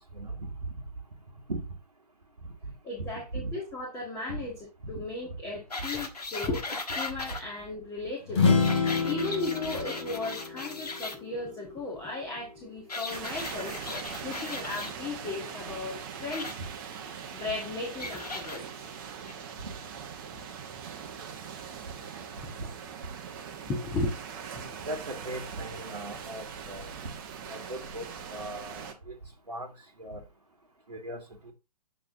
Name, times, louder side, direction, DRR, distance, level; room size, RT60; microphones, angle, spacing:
voice 1, 0.1-0.5 1.5-1.6 3.0-3.5 4.3-4.4 4.9-5.0 19.6-19.7 24.8-26.9 27.5-29.1 29.5-29.7 30.0-30.2 30.9-31.5, right 1 dB, 80° right, 1.4 m, -38 dB
voice 2, 2.8-8.6 8.9-16.6 17.3-18.9 23.7-24.1 24.5-24.7, left 2 dB, 15° left, 1.6 m, -36 dB
sound 1, 5.7-7.4 8.5-11.2 12.9-14.9 16.3-16.5 18.0-18.6 19.3-19.4, left 3 dB, 75° left, 1.4 m, -37 dB
sound 2, 8.3-12.0, left 4 dB, 45° left, 2.8 m, -28 dB
sound 3, 13.1-28.9, right 7 dB, 30° right, 1.0 m, -41 dB
7.5 x 6.0 x 2.7 m
figure-of-eight pair, 125°, 21 cm